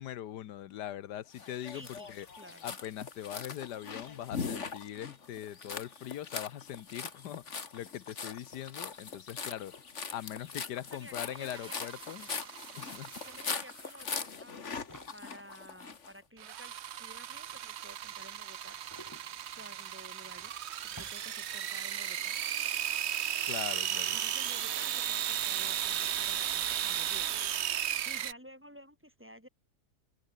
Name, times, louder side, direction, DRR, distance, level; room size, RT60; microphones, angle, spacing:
voice 1, 0.0-2.3 2.6-9.7 10.1-12.3 12.7-13.1 23.5-24.2, left 11 dB, 75° left, 1.4 m, -41 dB
sound 1, 1.3-16.1, left 5 dB, 45° left, 2.1 m, -41 dB
voice 2, 1.7-2.1 2.4-2.7 10.9-11.8 13.2-14.8 15.1-18.8 19.6-20.6 20.8-22.4 24.1-29.5, equal, 5° right, 5.1 m, -53 dB
sound 2, 11.1-11.2 11.4-21.9, left 1 dB, 10° left, 4.8 m, -59 dB
sound 3, 11.4-13.9 16.4-28.3, right 10 dB, 55° right, 0.7 m, -35 dB
omnidirectional pair, 1.8 m